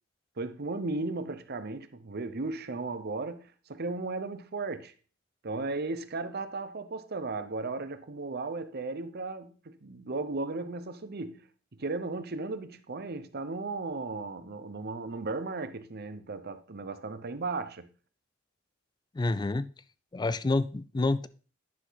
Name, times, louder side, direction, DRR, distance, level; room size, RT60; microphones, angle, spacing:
voice 1, 0.4-4.9 5.4-11.4 11.8-17.9, right 3 dB, 55° right, 0.8 m, -35 dB
voice 2, 19.2-19.7 20.1-21.3, left 2 dB, 20° left, 0.4 m, -28 dB
10.5 x 6.1 x 4.0 m
head